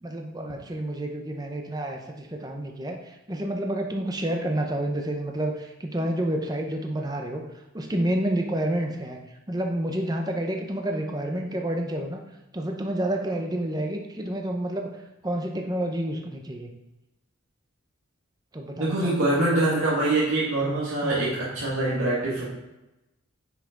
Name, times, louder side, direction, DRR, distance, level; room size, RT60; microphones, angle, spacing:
voice 1, 0.0-7.4 7.7-9.2 9.5-12.2 12.5-14.9 15.2-16.7 18.5-19.5 21.0-21.3, right 1 dB, 20° right, 2 dB, 0.7 m, -29 dB
voice 2, 18.8-22.4, right 2 dB, 80° right, -7 dB, 2.0 m, -24 dB
9.6 x 5.8 x 3.8 m, 0.97 s
head